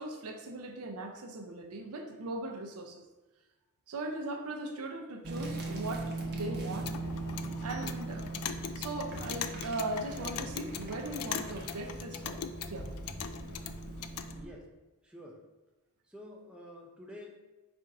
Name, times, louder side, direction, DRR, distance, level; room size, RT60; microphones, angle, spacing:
voice 1, 0.0-3.0 3.9-6.9 7.6-12.9, right 2 dB, 85° right, 4 dB, 0.6 m, -39 dB
sound 1, 5.2-14.4, right 2 dB, 50° right, 0.8 m, -40 dB
Clock, 6.6-14.3, left 8 dB, 75° left, 0.3 m, -41 dB
voice 2, 14.3-14.7 15.0-15.4 16.1-17.4, left 1 dB, 5° right, -1 dB, 0.5 m, -49 dB
4.2 x 2.5 x 4.7 m, 1.1 s
head